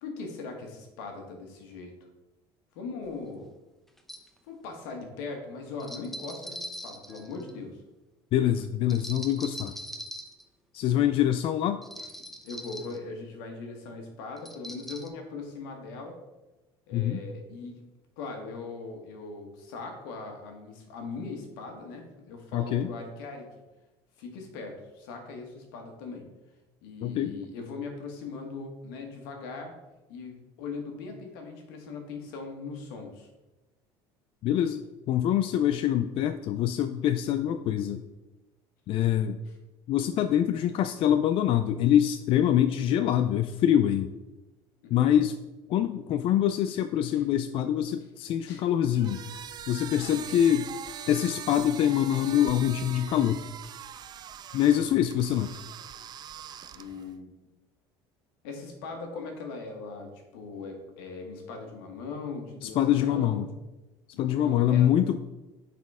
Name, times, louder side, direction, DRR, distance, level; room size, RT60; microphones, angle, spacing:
voice 1, 0.0-1.9 2.7-3.5 4.5-7.8 10.9-11.1 12.4-16.2 16.9-17.8 18.2-23.5 24.2-26.3 26.8-29.7 30.1-33.3 39.4-39.5 44.8-45.2 47.1-47.2 48.4-48.7 49.9-50.3 54.7-55.1 56.7-57.3 58.4-63.4 64.1-64.9, left 4 dB, 85° left, 3 dB, 1.5 m, -40 dB
sound 1, 3.1-3.2 4.0-4.3 5.8-7.6 8.9-10.4 11.8-13.0 14.4-15.1, equal, ahead, 0.7 m, -41 dB
voice 2, 8.3-9.7 10.7-11.8 16.9-17.2 22.5-22.9 27.0-27.3 34.4-38.0 38.9-39.4 39.9-44.1 44.9-45.4 45.7-49.2 49.7-50.7 51.1-53.4 54.5-55.6 62.6-63.5 64.2-65.2, left 10 dB, 55° left, 9 dB, 0.4 m, -25 dB
sound 2, 48.9-57.1, right 9 dB, 40° right, 0.4 m, -42 dB
9.2 x 4.2 x 3.6 m, 1.1 s
supercardioid pair, 100°, 11 cm